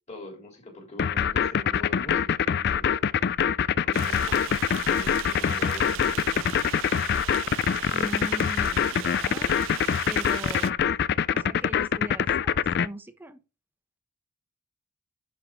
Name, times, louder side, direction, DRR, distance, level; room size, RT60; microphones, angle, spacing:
voice 1, 0.1-2.9 3.8-4.6 4.8-6.6, left 1 dB, 30° left, 3.4 m, -43 dB
sound 1, 1.0-12.9, left 8 dB, 45° left, 0.3 m, -24 dB
sound 2, 3.9-10.7, right 11 dB, 60° right, 0.3 m, -37 dB
voice 2, 7.9-9.5 10.1-10.8 11.3-13.4, right 1 dB, 10° right, 0.8 m, -40 dB
11.0 x 4.8 x 3.7 m
head